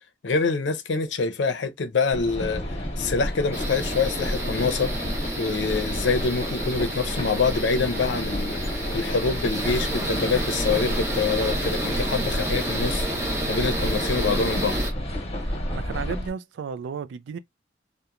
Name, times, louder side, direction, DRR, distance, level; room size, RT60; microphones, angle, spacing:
voice 1, 0.2-2.6 3.0-4.9 5.4-13.1 13.5-14.8, left 4 dB, 85° left, 0.5 m, -25 dB
sound 1, 2.1-16.3, equal, 35° left, 0.9 m, -30 dB
sound 2, 3.5-14.9, right 1 dB, 15° right, 0.7 m, -31 dB
voice 2, 15.4-17.4, right 6 dB, 85° right, 0.3 m, -34 dB
2.9 x 2.1 x 2.3 m
head